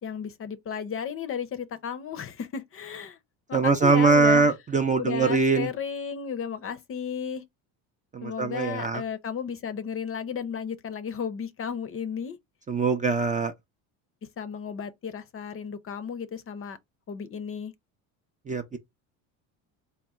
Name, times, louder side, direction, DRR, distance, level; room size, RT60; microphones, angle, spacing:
voice 1, 0.0-3.2 3.5-4.5 5.0-7.4 8.2-12.4 14.4-16.8 17.1-17.7, left 7 dB, 35° left, 0.6 m, -34 dB
voice 2, 3.5-5.7 8.1-9.0 12.7-13.5 18.5-18.8, right 4 dB, 20° right, 0.4 m, -22 dB
3.5 x 2.1 x 4.2 m
supercardioid pair, 95°, 41 cm